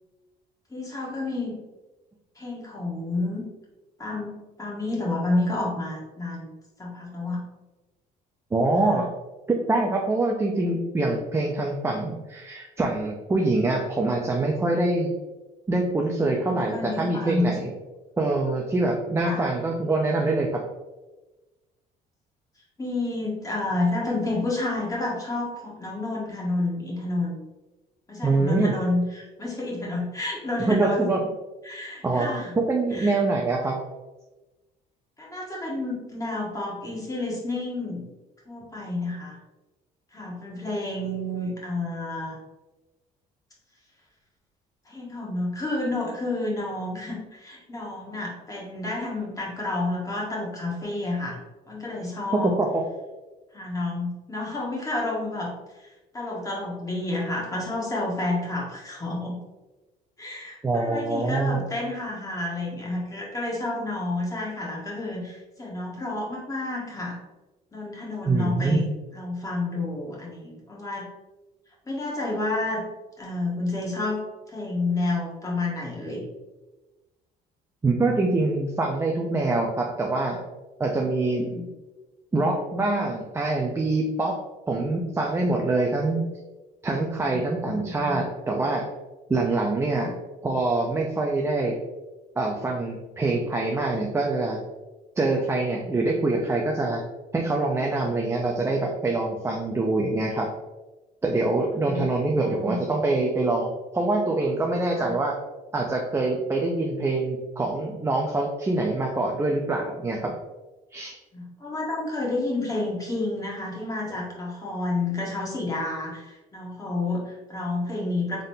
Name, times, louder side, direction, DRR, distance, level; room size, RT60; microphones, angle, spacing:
voice 1, 0.7-1.6 2.4-3.4 4.0-6.5 6.8-7.5 8.8-9.0 16.4-17.5 19.2-19.5 22.8-27.4 28.1-31.1 31.6-32.5 32.9-33.2 33.7-33.8 35.2-38.0 38.5-39.4 40.1-42.4 44.9-51.4 51.7-52.5 53.5-55.5 55.8-59.4 60.2-67.2 67.7-68.9 69.1-71.0 71.9-72.8 73.2-76.3 81.2-81.6 87.3-88.2 89.9-90.1 101.8-102.8 104.9-105.1 111.3-118.4, left 2 dB, 20° left, -4 dB, 1.4 m, -30 dB
voice 2, 8.5-9.1 9.5-15.1 15.7-17.7 18.2-20.6 28.2-28.7 30.6-31.2 32.0-32.3 32.6-33.7 52.3-52.8 60.6-61.6 68.3-68.8 77.8-80.4 80.8-81.5 82.3-84.4 84.7-86.2 86.8-88.8 89.3-90.1 90.4-91.7 92.4-94.6 95.2-97.0 97.3-100.5 101.2-105.3 105.7-110.3 110.9-111.2, right 2 dB, 15° right, 0 dB, 0.5 m, -24 dB
3.7 x 3.7 x 2.6 m, 1.1 s
cardioid pair, 110°, 17 cm